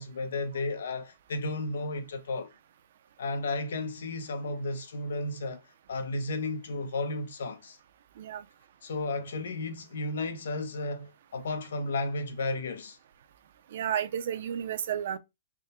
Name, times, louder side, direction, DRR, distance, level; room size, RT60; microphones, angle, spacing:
voice 1, 0.0-2.5 3.2-5.6 5.9-7.8 8.8-13.0, left 2 dB, 80° left, 0.9 m, -33 dB
voice 2, 13.7-15.2, right 9 dB, 55° right, 0.6 m, -32 dB
3.6 x 2.2 x 4.2 m
hypercardioid pair, 160°, 0 cm